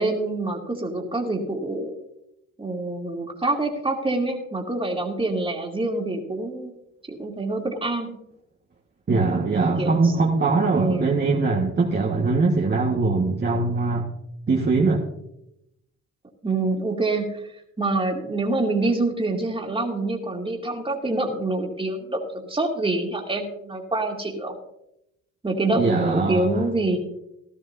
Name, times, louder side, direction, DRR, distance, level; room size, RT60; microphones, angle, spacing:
voice 1, 0.0-1.9 2.6-6.7 7.0-8.1 9.6-10.2 10.7-11.2 16.4-17.4 17.8-24.5 25.4-27.0, right 2 dB, 20° right, 1 dB, 2.5 m, -26 dB
voice 2, 9.1-14.1 14.5-15.0 25.7-26.6, right 3 dB, 35° right, -1 dB, 1.6 m, -22 dB
16.0 x 12.5 x 2.7 m, 0.82 s
cardioid pair, 90°, 30 cm